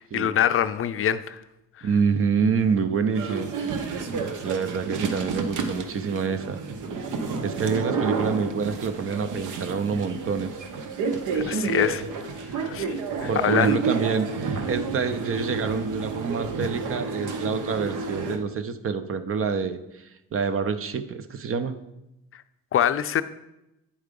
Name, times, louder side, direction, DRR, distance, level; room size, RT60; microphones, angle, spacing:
voice 1, 0.0-1.4 1.8-1.9 11.3-12.0 12.5-12.9 13.2-13.8 22.7-23.2, left 10 dB, 45° left, 12 dB, 0.4 m, -24 dB
voice 2, 1.8-3.5 4.4-6.6 7.4-10.5 13.3-21.8, right 5 dB, 45° right, 11 dB, 0.6 m, -27 dB
sound 1, 3.1-18.4, right 4 dB, 80° right, 0.9 m, -30 dB
8.7 x 4.6 x 5.2 m, 0.91 s
cardioid pair, 90°, 30 cm